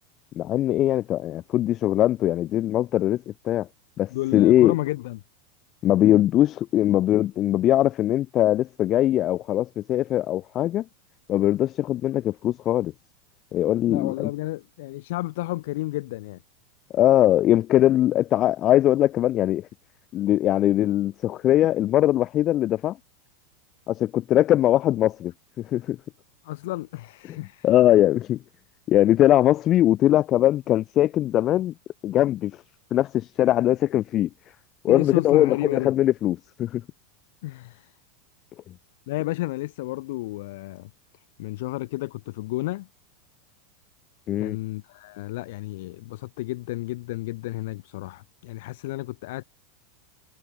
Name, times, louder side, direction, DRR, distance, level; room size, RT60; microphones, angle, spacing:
voice 1, 0.3-3.7 4.0-4.7 5.8-10.8 11.3-12.9 13.5-14.3 16.9-19.7 20.1-23.0 23.9-26.0 27.3-27.4 27.6-28.4 28.9-31.7 32.0-32.6 32.9-34.3 34.8-36.8 44.3-44.6, left 13 dB, 30° left, 0.8 m, -21 dB
voice 2, 4.1-5.2 13.9-16.4 26.4-27.7 34.9-35.9 37.4-38.0 39.1-40.9 41.4-42.9 44.4-49.4, left 19 dB, 60° left, 2.1 m, -31 dB
supercardioid pair, 160°, 0 cm